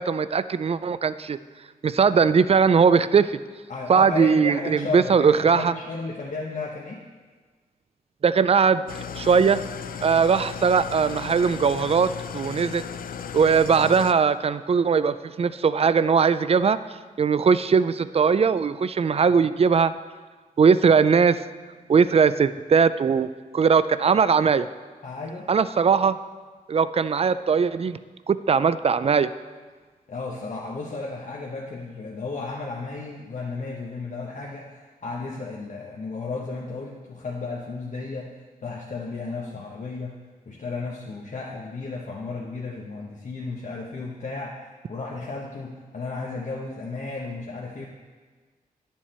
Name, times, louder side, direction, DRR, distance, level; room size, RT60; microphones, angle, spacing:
voice 1, 0.0-1.4 1.8-3.4 3.9-5.7 8.2-8.8 9.1-9.6 10.0-12.8 13.3-16.8 17.2-19.9 20.6-21.4 21.9-24.7 25.5-26.2 26.7-28.0 28.3-29.3, right 6 dB, 45° right, 14 dB, 0.4 m, -20 dB
voice 2, 3.7-7.0 25.0-25.5 30.1-40.1 40.5-44.6 44.9-47.9, left 3 dB, 60° left, -3 dB, 1.0 m, -34 dB
Engine starting / Idling, 8.9-14.1, left 7 dB, 75° left, 0.4 m, -35 dB
11.0 x 7.4 x 4.3 m, 1.4 s
wide cardioid pair, 105°, 15 cm